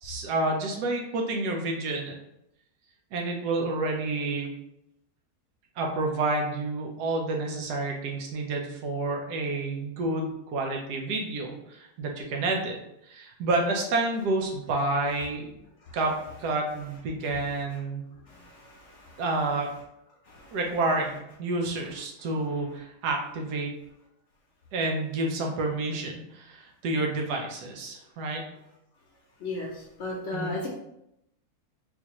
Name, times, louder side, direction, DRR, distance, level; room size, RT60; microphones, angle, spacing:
voice 1, 0.0-2.1 3.1-4.5 5.8-12.8 13.0-15.5 15.9-18.0 19.2-19.7 20.5-23.7 24.7-28.4 30.3-30.5, right 2 dB, 85° right, 1 dB, 1.3 m, -29 dB
voice 2, 18.3-19.2 20.3-20.6 29.4-30.7, left 1 dB, 60° left, -2 dB, 0.8 m, -36 dB
4.1 x 2.5 x 2.9 m, 0.82 s
omnidirectional pair, 1.7 m